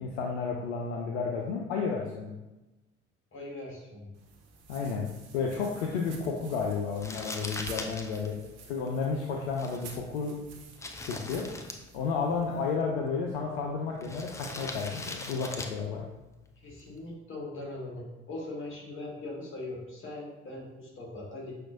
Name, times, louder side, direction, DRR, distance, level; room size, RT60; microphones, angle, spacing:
voice 1, 0.0-2.3 4.7-5.0 5.3-8.4 8.7-10.4 11.1-11.5 11.9-16.1, left 5 dB, 70° left, 0 dB, 0.5 m, -32 dB
voice 2, 3.3-4.1 16.6-21.5, left 2 dB, 35° left, -2 dB, 1.4 m, -40 dB
sound 1, 4.1-12.7, right 4 dB, 50° right, 0.9 m, -51 dB
Crumpling crinkling, 7.0-17.1, left 2 dB, 10° left, 0.3 m, -43 dB
5.9 x 2.5 x 2.5 m, 1.0 s
figure-of-eight pair, 50°, 34 cm